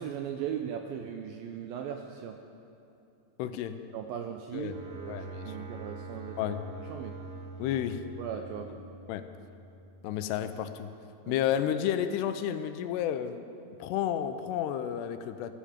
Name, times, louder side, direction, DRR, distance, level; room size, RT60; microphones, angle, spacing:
voice 1, 0.0-2.4 3.9-6.4 6.9-7.2 8.2-8.7 11.3-11.4, right 8 dB, 85° right, 5 dB, 2.1 m, -38 dB
voice 2, 3.4-3.8 4.5-4.8 5.1-5.5 6.4-6.7 7.6-8.1 8.7-9.3 10.0-10.9 11.3-13.5 13.8-15.5, left 10 dB, 85° left, 10 dB, 2.7 m, -31 dB
sound 1, 4.7-10.7, right 3 dB, 65° right, 3.9 m, -45 dB
15.5 x 15.0 x 5.0 m, 2.7 s
omnidirectional pair, 4.9 m